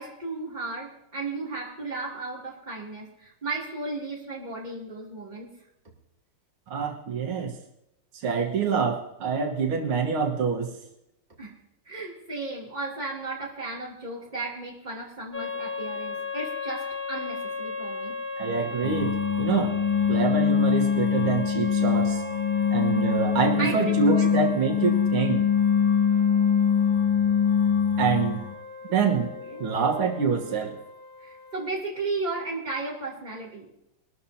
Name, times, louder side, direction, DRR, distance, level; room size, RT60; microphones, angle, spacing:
voice 1, 0.0-5.5 11.4-11.6 11.8-18.1 23.6-24.3 26.1-26.5 27.3-27.4 29.4-29.6 31.2-33.7, right 3 dB, 20° right, -4 dB, 2.9 m, -35 dB
voice 2, 6.7-7.6 8.2-10.7 18.4-19.8 20.1-22.2 22.7-25.5 28.0-28.4 28.9-29.3 29.6-30.8, right 5 dB, 85° right, 2 dB, 2.2 m, -26 dB
sound 1, 15.3-31.7, left 2 dB, 40° left, 0.7 m, -37 dB
sound 2, 18.8-28.5, left 7 dB, 70° left, 1.5 m, -23 dB
22.0 x 13.0 x 2.8 m, 0.83 s
omnidirectional pair, 2.3 m